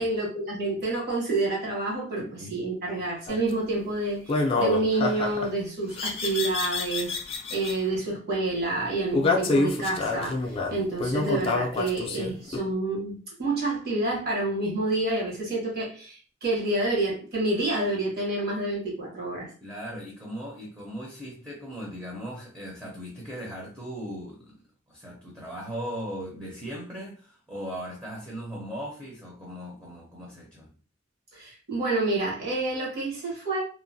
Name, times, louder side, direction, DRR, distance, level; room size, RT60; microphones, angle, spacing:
voice 1, 0.0-2.2 2.5-19.5 31.3-33.6, right 2 dB, 55° right, 1.2 m, -28 dB
voice 2, 2.2-2.6 19.6-24.5 24.9-30.7, equal, 10° right, 0.6 m, -38 dB
sound 1, 3.3-3.5 4.3-5.5 6.0-7.7 9.1-12.6, left 3 dB, 30° left, 0.4 m, -27 dB
2.9 x 2.1 x 2.6 m
head